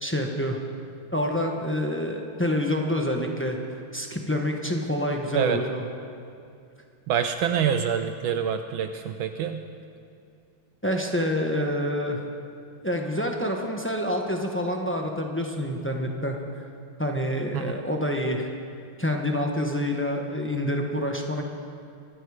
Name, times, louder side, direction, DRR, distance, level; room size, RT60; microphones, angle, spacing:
voice 1, 0.0-0.6 1.1-3.6 3.9-5.8 10.8-12.2 12.8-16.3 17.0-18.5 19.0-21.4, left 1 dB, 15° left, 2 dB, 0.4 m, -27 dB
voice 2, 7.1-9.6 17.5-17.8, right 8 dB, 75° right, 7 dB, 1.4 m, -26 dB
24.0 x 12.0 x 4.9 m, 2.4 s
omnidirectional pair, 2.4 m